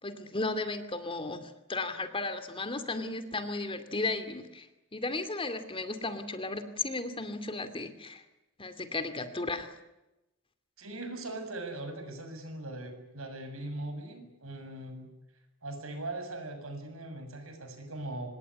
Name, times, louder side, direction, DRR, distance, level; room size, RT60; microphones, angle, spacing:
voice 1, 0.0-8.2 8.6-9.7, left 3 dB, 25° left, 10 dB, 2.4 m, -35 dB
voice 2, 10.8-15.1 15.6-18.3, right 2 dB, 70° right, 6 dB, 7.0 m, -40 dB
26.5 x 20.5 x 9.7 m, 0.97 s
head